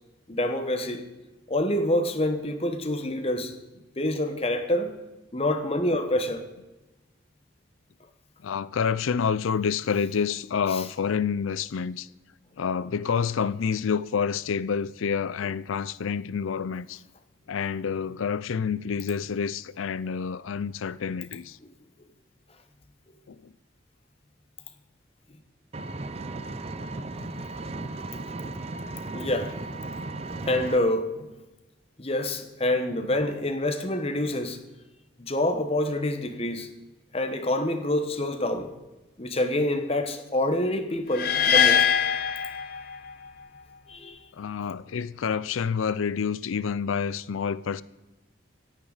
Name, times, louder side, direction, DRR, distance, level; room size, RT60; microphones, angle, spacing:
voice 1, 0.3-1.0 1.5-3.5 4.0-4.9 5.3-6.4 10.7-10.8 27.1-27.4 29.1-29.5 30.4-31.3 32.0-34.6 35.2-36.7 37.1-38.7 39.2-41.9 43.9-44.2, left 1 dB, 30° left, 1.1 m, -27 dB
voice 2, 8.4-12.1 12.6-17.0 17.5-21.6 23.3-23.5 44.3-47.8, left 6 dB, 85° left, 0.4 m, -28 dB
Engine, 25.7-30.8, right 2 dB, 30° right, 0.5 m, -35 dB
sound 1, 41.1-43.3, left 7 dB, 50° left, 0.8 m, -22 dB
26.0 x 8.9 x 4.0 m
head